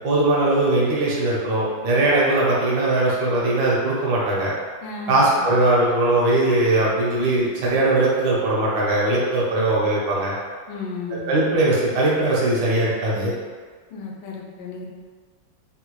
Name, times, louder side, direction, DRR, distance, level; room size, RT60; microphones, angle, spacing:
voice 1, 0.0-4.5 5.1-10.3 11.3-13.3, right 2 dB, 75° right, -5 dB, 1.5 m, -20 dB
voice 2, 4.8-5.5 10.7-11.4 13.9-14.9, left 4 dB, 80° left, 0 dB, 1.3 m, -34 dB
3.6 x 2.2 x 3.0 m, 1.5 s
omnidirectional pair, 2.1 m